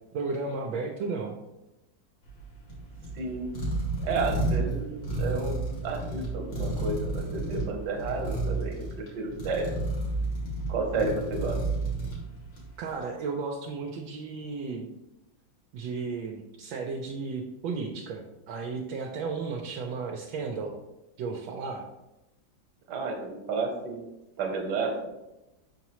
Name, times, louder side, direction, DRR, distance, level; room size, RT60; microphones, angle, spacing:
voice 1, 0.1-1.3 12.8-14.9 15.7-20.8 21.2-21.8, right 4 dB, 80° right, 1 dB, 1.3 m, -34 dB
sound 1, 2.2-12.8, right 2 dB, 65° left, 2.5 m, -32 dB
voice 2, 3.2-3.5 4.0-9.7 10.7-11.6 22.9-24.1 24.4-24.9, right 3 dB, 60° right, 3 dB, 1.6 m, -31 dB
5.8 x 5.5 x 3.0 m, 0.98 s
omnidirectional pair, 2.2 m